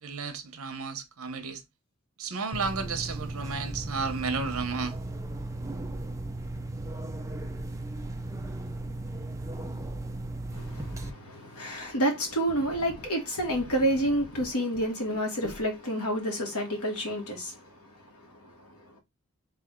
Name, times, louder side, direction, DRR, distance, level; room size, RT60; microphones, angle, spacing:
voice 1, 0.0-1.6 2.2-5.0, right 4 dB, 70° right, 0.9 m, -33 dB
sound 1, 2.5-11.1, right 2 dB, 15° right, 0.5 m, -36 dB
voice 2, 10.5-19.0, right 1 dB, 85° left, 1.9 m, -30 dB
3.6 x 3.4 x 3.6 m
head